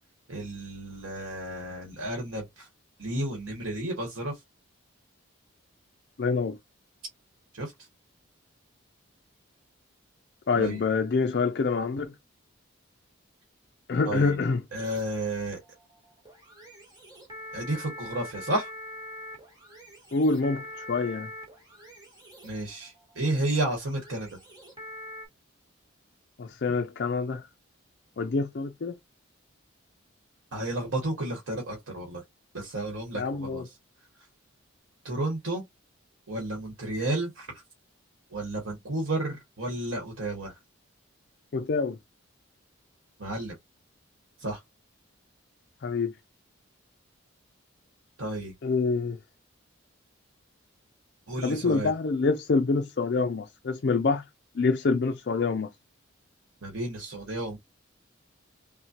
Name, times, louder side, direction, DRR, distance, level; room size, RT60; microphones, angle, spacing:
voice 1, 0.3-2.7 3.0-4.3 7.5-7.7 10.5-10.8 14.0-14.4 14.7-15.6 17.5-18.7 22.4-24.3 30.5-32.2 32.5-33.7 35.0-35.6 36.3-37.5 38.3-40.5 43.2-43.5 44.4-44.6 48.2-48.5 51.3-51.9 56.6-57.6, right 1 dB, 80° right, 1.2 m, -32 dB
voice 2, 6.2-6.6 10.5-12.1 13.9-14.6 20.1-21.3 26.4-27.4 28.2-28.9 33.1-33.6 41.5-42.0 45.8-46.1 48.6-49.2 51.4-54.2 54.6-55.7, left 4 dB, 50° left, 0.4 m, -26 dB
sound 1, 14.7-25.3, left 1 dB, 20° right, 1.4 m, -44 dB
5.9 x 2.2 x 2.8 m
head